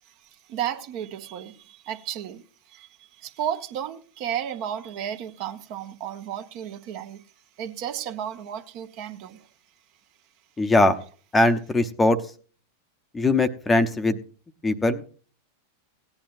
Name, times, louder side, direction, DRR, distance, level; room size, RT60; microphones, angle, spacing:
voice 1, 0.5-7.2 7.6-9.5, right 10 dB, 45° right, 1.2 m, -33 dB
voice 2, 10.6-11.0 11.3-12.2 13.1-14.2 14.6-15.0, left 2 dB, 15° left, 0.9 m, -20 dB
18.0 x 10.5 x 2.6 m
figure-of-eight pair, 90°, 0 cm